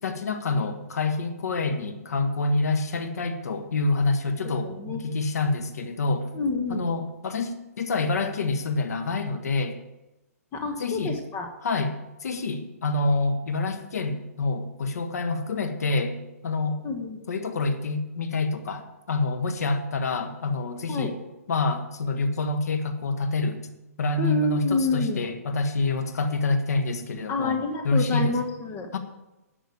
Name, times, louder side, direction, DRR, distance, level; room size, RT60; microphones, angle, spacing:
voice 1, 0.0-6.3 6.7-9.8 10.8-11.2 11.6-16.2 16.4-16.8 17.3-21.1 21.5-23.6 24.0-27.6 27.8-28.4 28.9-29.0, left 3 dB, 70° left, 7 dB, 1.6 m, -27 dB
voice 2, 4.6-5.0 6.3-6.8 10.5-11.5 16.8-17.2 20.9-21.1 24.2-25.2 27.3-28.9, left 2 dB, 25° left, 3 dB, 1.5 m, -28 dB
11.5 x 6.2 x 8.5 m, 1.0 s
hypercardioid pair, 145°, 9 cm